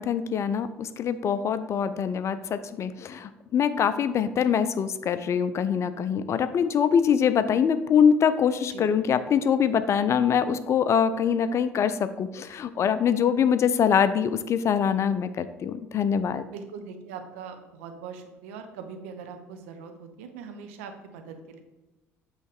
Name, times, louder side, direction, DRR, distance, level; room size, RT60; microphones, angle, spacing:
voice 1, 0.0-16.5, left 7 dB, 40° left, 13 dB, 0.4 m, -24 dB
voice 2, 16.5-21.6, right 6 dB, 70° right, 6 dB, 0.7 m, -41 dB
8.1 x 3.2 x 4.6 m, 1.1 s
figure-of-eight pair, 55°, 7 cm